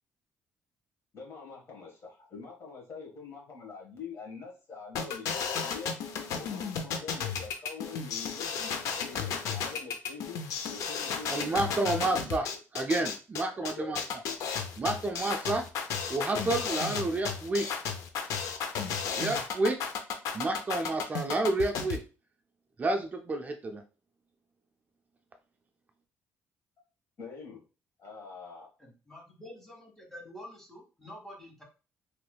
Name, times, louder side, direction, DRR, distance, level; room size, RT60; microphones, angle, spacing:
voice 1, 1.1-5.9 6.3-10.4 10.7-12.3 13.5-14.0 27.2-27.6 28.0-28.7, left 5 dB, 55° left, -2 dB, 1.4 m, -45 dB
sound 1, 5.0-22.0, left 6 dB, 80° left, 0.5 m, -33 dB
voice 2, 11.3-12.5 12.7-14.0 14.8-15.7 16.1-17.7 19.1-19.8 20.3-22.0 22.8-23.8, right 2 dB, 30° right, 4 dB, 0.4 m, -30 dB
voice 3, 28.8-31.6, left 1 dB, 5° left, -1 dB, 1.3 m, -48 dB
3.1 x 3.0 x 2.2 m, 0.34 s
cardioid pair, 95°, 6 cm